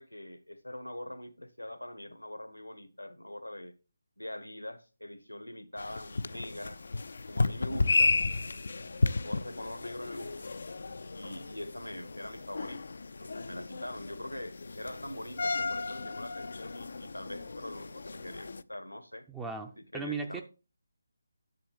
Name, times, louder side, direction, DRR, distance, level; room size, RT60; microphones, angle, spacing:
voice 1, 0.0-3.7 4.2-6.8 7.3-8.1 8.7-10.5 11.1-12.8 13.2-19.3 19.8-20.4, left 1 dB, 90° left, 1.4 m, -43 dB
sound 1, 5.8-18.6, left 3 dB, 60° left, 0.5 m, -33 dB
voice 2, 19.3-20.4, right 4 dB, 10° right, 0.6 m, -37 dB
10.5 x 7.1 x 3.5 m
figure-of-eight pair, 150°, 0 cm